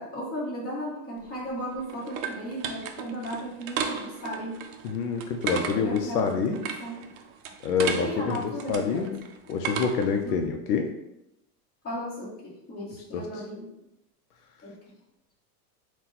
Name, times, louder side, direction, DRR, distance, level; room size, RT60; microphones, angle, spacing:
voice 1, 0.0-4.6 5.5-7.0 8.0-9.0 10.2-10.5 11.8-13.7 14.6-14.7, equal, 20° left, -7 dB, 1.3 m, -36 dB
sound 1, 1.2-10.2, right 7 dB, 60° right, 0.6 m, -35 dB
voice 2, 4.8-6.6 7.6-9.2 9.5-10.9 13.1-13.3, left 6 dB, 70° left, 4 dB, 0.6 m, -27 dB
4.0 x 2.3 x 4.2 m, 0.84 s
supercardioid pair, 170°, 47 cm